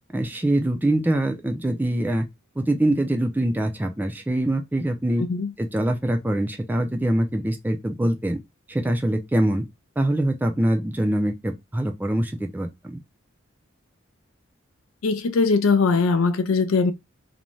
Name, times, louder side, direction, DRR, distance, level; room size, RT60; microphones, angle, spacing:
voice 1, 0.1-2.3 2.6-5.2 5.6-8.4 8.7-9.6 10.0-13.0, right 1 dB, 10° right, 0.4 m, -24 dB
voice 2, 5.2-5.5 15.0-16.9, left 4 dB, 90° left, 0.4 m, -20 dB
2.6 x 2.2 x 3.0 m
head